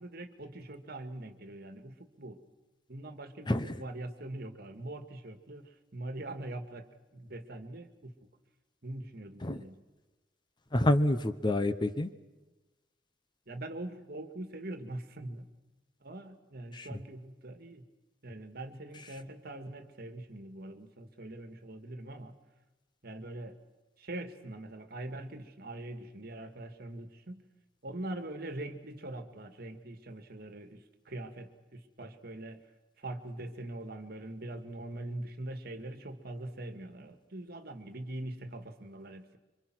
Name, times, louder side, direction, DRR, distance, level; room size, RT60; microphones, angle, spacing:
voice 1, 0.0-2.4 2.9-6.9 7.1-8.1 8.8-9.8 13.5-15.5 16.0-17.8 18.2-22.3 23.0-23.6 24.0-27.4 27.8-32.6 33.0-39.4, right 1 dB, 55° right, 8 dB, 1.9 m, -43 dB
voice 2, 10.7-12.1 16.7-16.9, left 1 dB, 25° left, 10 dB, 0.9 m, -28 dB
26.0 x 25.0 x 6.2 m, 1.1 s
head